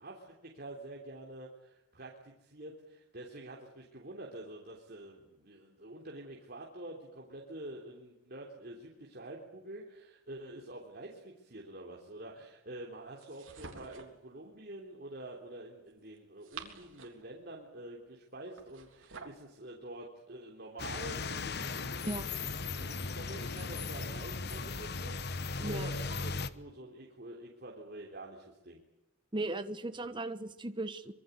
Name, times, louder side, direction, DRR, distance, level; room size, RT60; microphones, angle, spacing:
voice 1, 0.0-22.4 22.8-28.8, right 1 dB, 50° right, -1 dB, 3.5 m, -47 dB
sound 1, 13.2-14.2 16.2-17.3 18.6-19.5, right 5 dB, 70° right, 3.6 m, -49 dB
sound 2, 20.8-26.5, left 4 dB, 50° left, 1.1 m, -37 dB
voice 2, 29.3-31.1, right 2 dB, 25° right, 9 dB, 1.2 m, -37 dB
25.5 x 22.5 x 8.3 m, 0.91 s
head